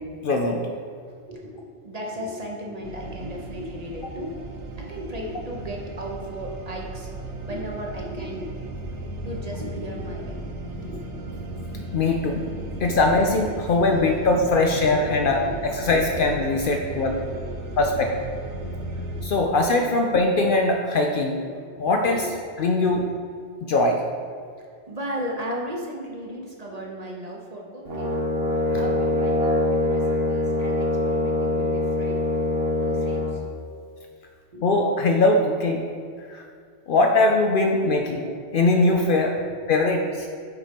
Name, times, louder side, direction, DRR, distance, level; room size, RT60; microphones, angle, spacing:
voice 1, 0.2-0.6 11.9-12.4 12.8-15.4 15.9-17.1 17.8-18.1 19.2-21.4 21.8-22.2 22.6-23.0 23.6-24.0 28.7-28.8 34.6-35.8 36.3-36.4 36.9-38.2 38.5-39.4 39.7-40.3, left 2 dB, 60° left, 2 dB, 0.6 m, -21 dB
voice 2, 1.1-4.5 4.8-7.1 7.4-8.7 9.2-11.2 12.6-12.7 14.7-15.8 16.8-18.1 18.6-19.5 21.3-21.7 22.1-22.4 22.8-23.0 24.6-28.2 28.8-32.2 32.8-33.5 34.5-34.7, equal, 40° right, -1 dB, 0.8 m, -36 dB
sound 1, 2.8-19.3, right 1 dB, 90° right, 1.0 m, -36 dB
Brass instrument, 27.8-33.3, left 1 dB, 60° right, 1.2 m, -24 dB
5.9 x 4.3 x 5.1 m, 2.2 s
omnidirectional pair, 1.2 m